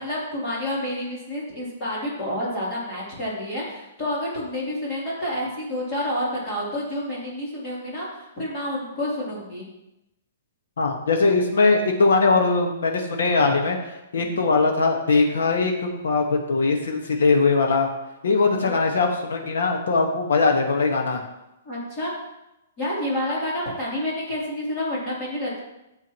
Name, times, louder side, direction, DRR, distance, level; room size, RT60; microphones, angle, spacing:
voice 1, 0.0-9.7 21.6-22.1 22.8-25.6, left 1 dB, 20° left, -7 dB, 3.3 m, -29 dB
voice 2, 10.8-13.8 14.1-15.7 16.0-17.9 18.2-21.2, left 4 dB, 85° left, 2 dB, 1.5 m, -20 dB
12.0 x 8.1 x 3.1 m, 0.91 s
hypercardioid pair, 180°, 0 cm